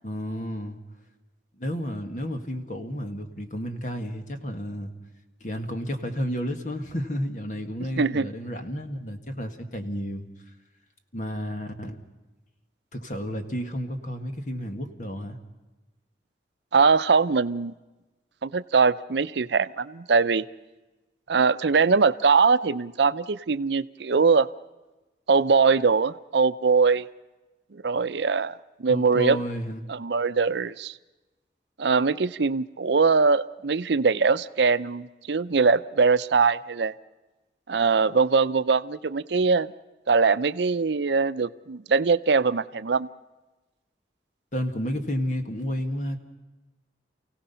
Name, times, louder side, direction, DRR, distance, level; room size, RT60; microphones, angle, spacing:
voice 1, 0.0-0.8 1.6-4.9 5.4-10.3 11.1-12.0 12.9-15.4 28.9-29.8 44.5-46.2, equal, 45° left, 6 dB, 1.8 m, -31 dB
voice 2, 8.0-8.3 16.7-17.7 18.4-20.4 21.3-24.5 25.3-27.1 27.7-29.4 29.9-30.9 31.8-36.9 37.7-39.7 40.1-43.1, right 4 dB, 75° right, 13 dB, 0.6 m, -22 dB
29.0 x 17.0 x 5.7 m, 1.1 s
head